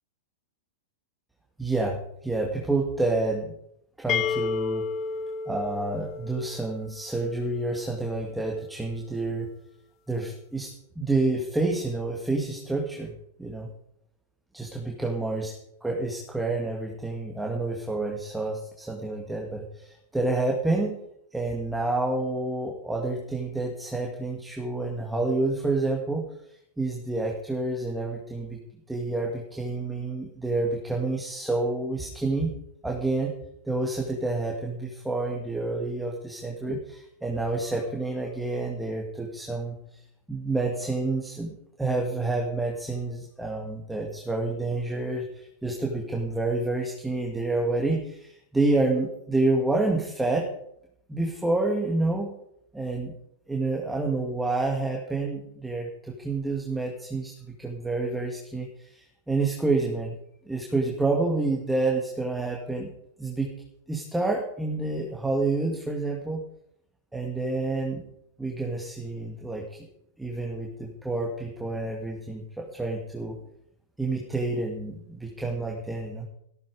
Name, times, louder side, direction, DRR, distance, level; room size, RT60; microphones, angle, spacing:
voice 1, 1.6-3.5 4.0-4.9 5.5-9.5 10.1-13.1 13.4-13.7 14.5-15.5 15.8-21.0 21.3-26.3 26.8-28.6 28.9-32.5 32.8-33.3 33.7-50.5 51.1-52.4 52.7-53.1 53.5-60.2 60.5-62.9 63.2-63.5 63.9-66.4 67.1-68.0 68.4-69.9 70.2-73.4 74.0-76.3, right 2 dB, 5° right, 0 dB, 2.3 m, -28 dB
sound 1, 4.1-7.8, left 6 dB, 40° left, 1.1 m, -32 dB
15.0 x 13.0 x 5.0 m, 0.75 s
hypercardioid pair, 115°, 0 cm